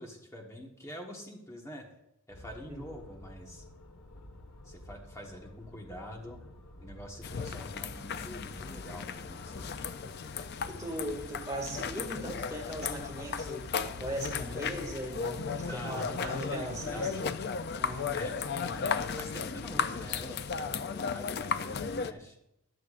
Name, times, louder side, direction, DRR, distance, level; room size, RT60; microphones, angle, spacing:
voice 1, 0.0-1.9 2.3-3.6 4.6-6.4 6.8-9.7 15.6-17.2 18.1-22.4, equal, 15° left, 1 dB, 1.3 m, -45 dB
sound 1, 2.3-20.6, left 1 dB, 90° left, 1.5 m, -51 dB
sound 2, 7.2-22.1, left 6 dB, 45° left, 0.4 m, -35 dB
voice 2, 10.7-17.3 17.8-18.3, right 1 dB, 15° right, -1 dB, 2.1 m, -39 dB
14.5 x 10.0 x 2.5 m, 0.84 s
head